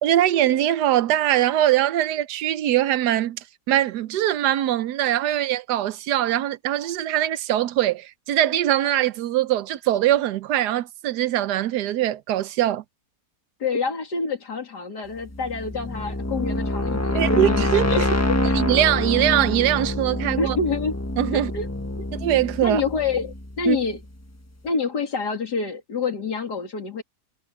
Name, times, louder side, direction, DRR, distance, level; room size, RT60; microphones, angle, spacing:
voice 1, 0.0-12.8 17.1-17.9 18.5-20.6 21.2-21.5 22.2-22.8 23.7-23.8, right 12 dB, 85° right, 1.3 m, -22 dB
voice 2, 13.6-18.6 20.4-21.0 21.3-21.7 22.0-22.1 22.6-24.0 24.6-27.0, left 4 dB, 90° left, 3.4 m, -27 dB
sound 1, 15.2-24.0, left 1 dB, 10° left, 1.1 m, -26 dB
omnidirectional pair, 1.7 m